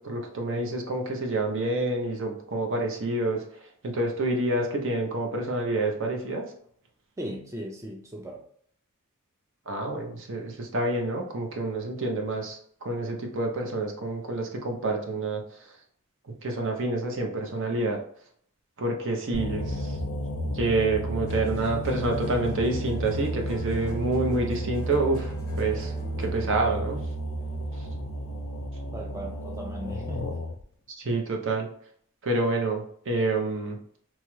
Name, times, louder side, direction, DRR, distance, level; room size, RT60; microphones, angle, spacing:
voice 1, 0.0-3.4 3.8-6.5 9.7-15.4 16.4-18.0 18.8-20.0 20.5-25.9 26.2-27.0 31.0-31.7 32.2-33.8, right 2 dB, 60° right, 2 dB, 0.6 m, -28 dB
voice 2, 7.2-8.4 28.9-30.4, right 1 dB, 15° right, 0 dB, 0.3 m, -37 dB
sound 1, 19.3-30.6, equal, 70° left, 0.4 m, -32 dB
sound 2, 21.3-26.6, left 1 dB, 10° left, 0.9 m, -43 dB
3.0 x 2.3 x 3.1 m, 0.62 s
head